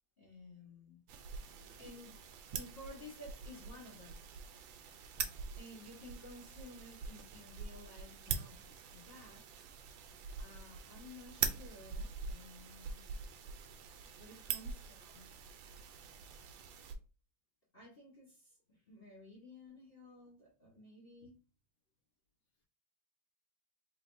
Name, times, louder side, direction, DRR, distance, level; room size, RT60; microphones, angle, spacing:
voice 1, 0.2-1.0 1.8-2.2 2.5-4.2 5.0-9.7 10.4-13.0 13.6-13.7 14.2-15.3 17.7-21.3, left 2 dB, 40° left, 0.9 m, -54 dB
sound 1, 1.1-16.9, right 6 dB, 80° right, 1.3 m, -44 dB
voice 2, 1.2-2.0, right 3 dB, 15° left, 0.6 m, -67 dB
3.9 x 2.9 x 2.5 m
omnidirectional pair, 2.2 m